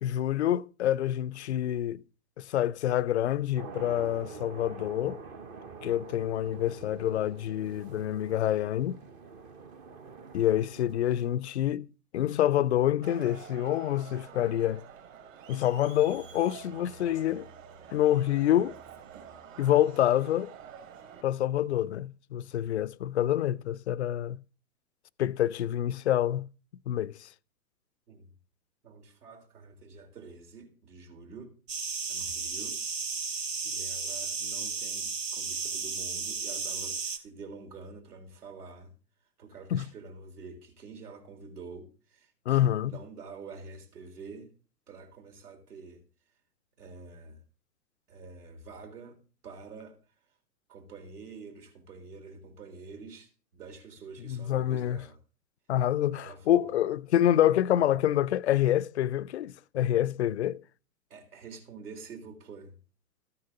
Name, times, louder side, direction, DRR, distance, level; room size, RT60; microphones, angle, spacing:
voice 1, 0.0-2.0 2.4-5.2 5.8-9.0 10.3-14.8 15.5-17.5 17.9-18.8 19.6-20.5 21.2-24.4 25.2-26.5 26.9-27.3 39.7-39.9 42.5-42.9 54.2-55.0 55.7-60.6, left 12 dB, 45° left, 0.4 m, -27 dB
sound 1, 3.5-11.4, right 5 dB, 20° right, 0.6 m, -46 dB
Crowd, 13.0-21.2, right 7 dB, 50° right, 5.3 m, -48 dB
voice 2, 28.8-31.6 32.1-32.8 33.3-38.9 39.4-44.5 44.9-46.0 46.8-47.4 48.1-49.2 49.4-50.0 50.7-55.2 56.1-56.8 61.1-62.8, right 4 dB, 65° right, 3.7 m, -47 dB
sound 2, 31.7-37.2, right 5 dB, 85° right, 1.3 m, -34 dB
13.5 x 9.8 x 3.8 m
figure-of-eight pair, 120°, 48 cm